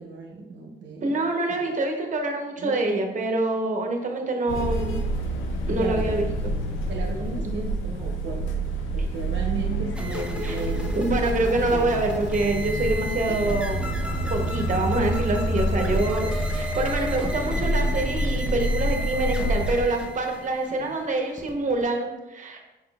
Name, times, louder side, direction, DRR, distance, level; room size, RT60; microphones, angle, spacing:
voice 1, 0.0-1.1 1.5-1.6 2.6-2.8 5.7-6.2 6.9-8.6 8.9-11.2 11.7-11.9 13.3-13.4 20.8-20.9, right 3 dB, 65° right, 0 dB, 0.7 m, -35 dB
voice 2, 1.0-5.0 5.7-6.3 10.4-10.6 10.9-13.8 14.3-22.6, right 2 dB, 40° right, 2 dB, 0.9 m, -26 dB
sound 1, 4.5-19.8, equal, 80° left, 0.5 m, -28 dB
sound 2, 9.9-21.8, equal, 5° right, 0.5 m, -32 dB
5.7 x 3.6 x 2.3 m, 1.1 s
cardioid pair, 90°, 20 cm